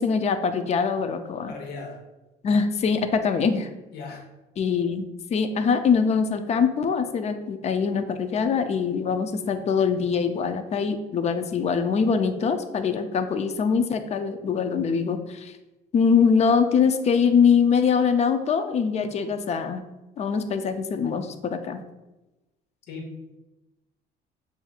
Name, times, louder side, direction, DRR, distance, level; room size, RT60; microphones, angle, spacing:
voice 1, 0.0-1.5 2.4-3.7 4.6-15.5 15.9-19.8 20.2-21.8, left 6 dB, 40° left, 8 dB, 0.4 m, -23 dB
voice 2, 1.5-2.0 3.9-4.3 22.9-23.1, left 3 dB, 80° left, 0 dB, 1.0 m, -37 dB
7.2 x 2.7 x 2.4 m, 1.0 s
cardioid pair, 110°, 17 cm